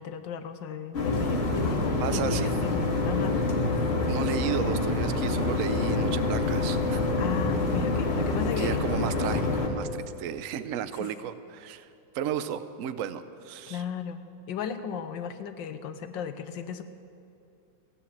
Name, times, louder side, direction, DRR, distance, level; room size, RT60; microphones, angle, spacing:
voice 1, 0.0-3.4 7.2-8.8 11.0-11.1 13.7-16.8, left 7 dB, 80° left, 9 dB, 1.4 m, -36 dB
sound 1, 0.9-9.7, left 2 dB, 35° left, 1.6 m, -26 dB
voice 2, 2.0-2.6 4.1-7.0 8.6-11.9 12.1-13.8, right 9 dB, 65° right, 12 dB, 0.8 m, -33 dB
17.0 x 10.0 x 7.3 m, 2.6 s
omnidirectional pair, 2.0 m